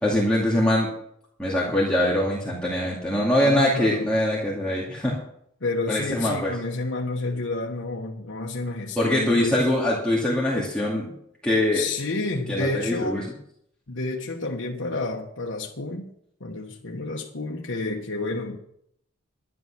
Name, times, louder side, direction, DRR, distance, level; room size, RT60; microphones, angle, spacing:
voice 1, 0.0-0.9 1.4-5.2 5.9-6.5 9.0-11.1 11.4-11.8 12.5-13.2, left 1 dB, 5° left, 2.4 m, -23 dB
voice 2, 3.4-4.1 5.6-9.7 11.7-13.3 13.9-16.1 16.4-18.6, left 2 dB, 80° left, 1.3 m, -30 dB
11.0 x 11.0 x 6.1 m
head